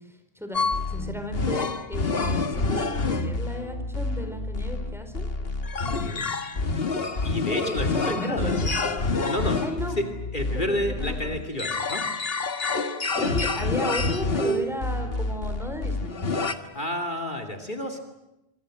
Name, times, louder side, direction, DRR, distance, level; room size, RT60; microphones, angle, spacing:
voice 1, 0.3-5.3 7.6-8.8 9.6-10.0 10.5-11.3 13.2-16.2, equal, ahead, 6 dB, 4.5 m, -34 dB
sound 1, 0.5-16.5, left 3 dB, 65° left, 1.8 m, -28 dB
voice 2, 5.8-6.3 7.2-8.6 9.3-9.6 10.0-10.1 10.3-12.0 16.6-18.0, left 1 dB, 50° left, 4 dB, 3.0 m, -30 dB
26.0 x 26.0 x 7.8 m, 0.92 s
omnidirectional pair, 1.1 m